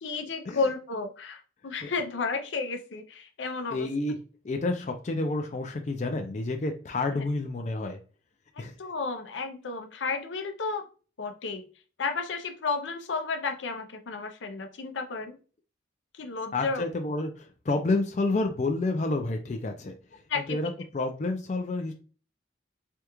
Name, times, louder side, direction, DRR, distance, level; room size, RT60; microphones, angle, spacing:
voice 1, 0.0-3.9 7.1-7.2 8.8-10.8 11.2-11.6 12.0-15.4 16.1-16.8 20.3-20.6, left 4 dB, 85° left, 6 dB, 0.6 m, -32 dB
voice 2, 3.7-4.2 4.4-8.0 8.6-8.7 16.5-20.2 20.5-21.9, left 2 dB, 40° left, 4 dB, 0.4 m, -29 dB
3.4 x 2.3 x 2.9 m, 0.38 s
head